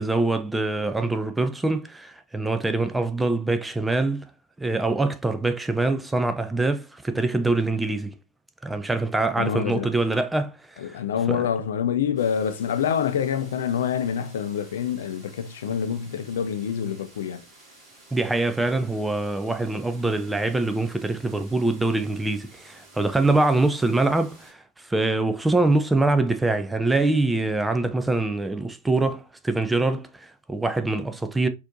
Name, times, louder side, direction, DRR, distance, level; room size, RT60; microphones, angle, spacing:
voice 1, 0.0-4.3 4.6-8.2 8.6-10.6 10.8-11.0 11.3-11.4 18.1-31.5, right 2 dB, 5° right, 0.4 m, -24 dB
voice 2, 9.4-9.9 10.8-17.4, left 8 dB, 60° left, 0.4 m, -26 dB
sound 1, 12.2-24.5, right 2 dB, 25° right, 2.1 m, -52 dB
4.1 x 2.8 x 2.6 m
figure-of-eight pair, 90°, 0 cm